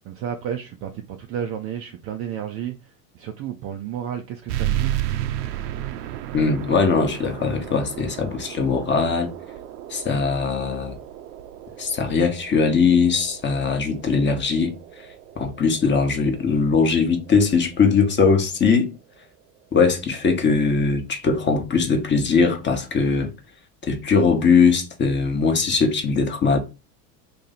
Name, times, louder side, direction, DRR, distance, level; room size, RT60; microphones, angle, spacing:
voice 1, 0.0-5.1, right 9 dB, 30° right, 0.3 m, -32 dB
sound 1, 4.5-19.6, right 12 dB, 70° right, 0.6 m, -34 dB
voice 2, 6.3-9.3 9.9-10.9 11.8-14.7 15.4-18.9 19.7-23.3 23.8-26.6, left 5 dB, 25° left, 0.8 m, -20 dB
2.8 x 2.7 x 3.9 m
hypercardioid pair, 95°, 49 cm